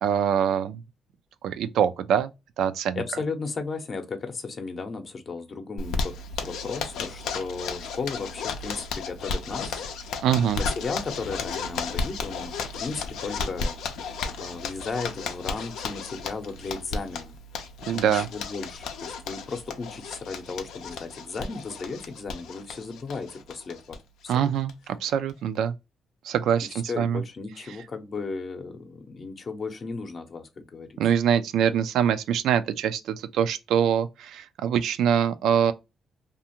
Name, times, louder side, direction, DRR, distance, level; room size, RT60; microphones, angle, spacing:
voice 1, 0.0-0.8 1.4-2.3 2.6-3.0 10.2-10.6 17.9-18.3 24.3-25.7 26.2-27.2 31.0-35.7, right 8 dB, 80° right, 0.3 m, -24 dB
voice 2, 3.0-9.8 10.6-13.8 14.4-17.4 17.9-24.0 24.2-24.5 26.7-31.0, left 4 dB, 45° left, 0.6 m, -35 dB
Zipper (clothing), 5.8-24.0 24.3-24.4 24.7-24.8 25.1-25.6, left 4 dB, 85° left, 0.5 m, -34 dB
2.4 x 2.4 x 2.8 m
cardioid pair, 90°, 0 cm